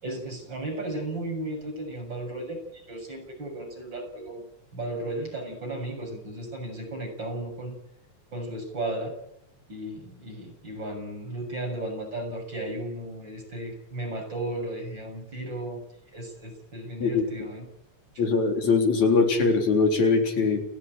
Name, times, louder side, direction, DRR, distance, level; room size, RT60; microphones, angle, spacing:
voice 1, 0.0-4.5 4.7-7.8 8.3-9.1 9.7-15.8 16.1-17.7, right 1 dB, 35° right, 2 dB, 7.6 m, -35 dB
voice 2, 18.2-20.6, left 4 dB, 60° left, 3 dB, 5.0 m, -22 dB
29.5 x 15.5 x 9.1 m, 0.80 s
omnidirectional pair, 3.6 m